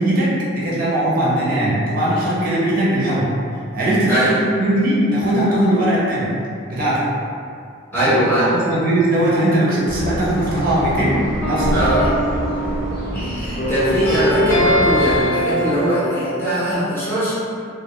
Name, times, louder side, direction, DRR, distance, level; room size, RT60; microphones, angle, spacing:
voice 1, 0.0-3.4 3.7-6.4 6.7-7.1 7.9-8.1 8.4-11.8, right 1 dB, 45° right, -7 dB, 0.4 m, -19 dB
voice 2, 4.1-4.4 7.9-8.4 11.7-12.4 13.1-17.4, right 1 dB, 10° left, -11 dB, 0.6 m, -20 dB
sound 1, 9.9-15.2, equal, 45° left, 0.7 m, -27 dB
sound 2, 11.4-13.3 13.6-16.7, equal, 80° left, 0.8 m, -22 dB
2.2 x 2.1 x 2.8 m, 2.4 s
head